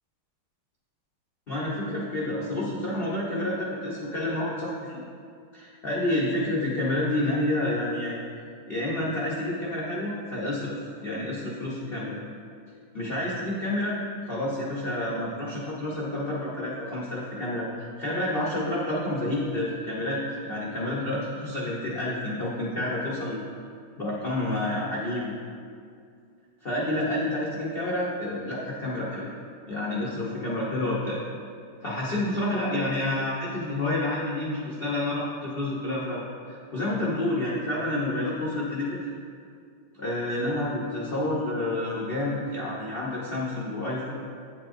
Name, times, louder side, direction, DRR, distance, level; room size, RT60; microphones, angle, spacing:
voice 1, 1.5-5.0 5.5-8.2 8.7-12.2 12.9-23.4 24.0-25.3 26.6-29.3 29.7-31.2 31.8-36.2 36.5-39.0 40.0-44.2, left 1 dB, 75° left, -6 dB, 0.5 m, -29 dB
8.9 x 7.3 x 2.5 m, 2.4 s
omnidirectional pair, 2.3 m